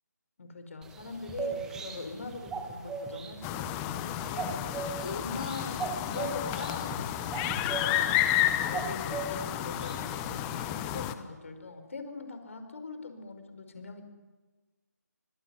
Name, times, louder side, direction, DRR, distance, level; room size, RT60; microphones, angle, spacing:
voice 1, 0.4-8.3 8.6-14.0, left 3 dB, 50° left, 8 dB, 5.2 m, -42 dB
sound 1, 0.8-10.7, right 4 dB, 5° right, 2.1 m, -39 dB
sound 2, 3.4-11.1, left 12 dB, 10° left, 1.0 m, -31 dB
25.0 x 23.5 x 9.7 m, 1.3 s
figure-of-eight pair, 155°, 9 cm